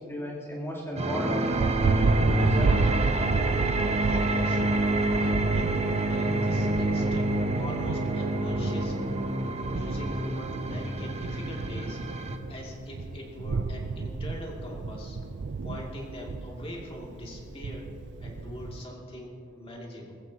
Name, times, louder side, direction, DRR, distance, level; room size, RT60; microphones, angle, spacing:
voice 1, 0.0-3.0, left 1 dB, 10° left, -6 dB, 3.1 m, -36 dB
sound 1, 1.0-12.4, right 2 dB, 30° right, 0.9 m, -27 dB
Thunder, 1.3-18.8, right 4 dB, 55° right, 0.4 m, -32 dB
voice 2, 4.0-9.1 9.7-12.1 12.5-15.2 15.6-17.9 18.2-20.1, left 1 dB, 30° left, -2 dB, 2.5 m, -42 dB
21.5 x 14.5 x 2.9 m, 2.6 s
head